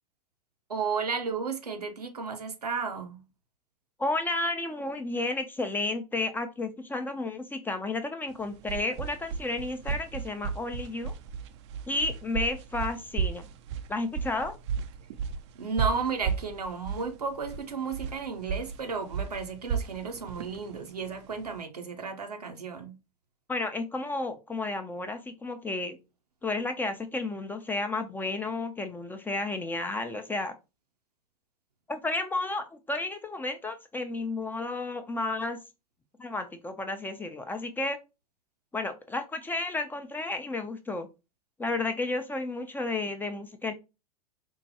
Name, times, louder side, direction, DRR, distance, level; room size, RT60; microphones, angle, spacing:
voice 1, 0.7-3.2 15.6-23.0, right 5 dB, 80° right, 0.8 m, -33 dB
voice 2, 4.0-11.1 11.9-13.5 13.9-14.6 23.5-26.0 26.4-30.5 31.9-35.6 36.2-38.0 38.7-41.1 41.6-43.7, left 2 dB, 10° left, 0.4 m, -32 dB
sound 1, 8.3-21.6, right 7 dB, 50° right, 0.4 m, -34 dB
4.5 x 2.2 x 2.7 m
figure-of-eight pair, 85°, 20 cm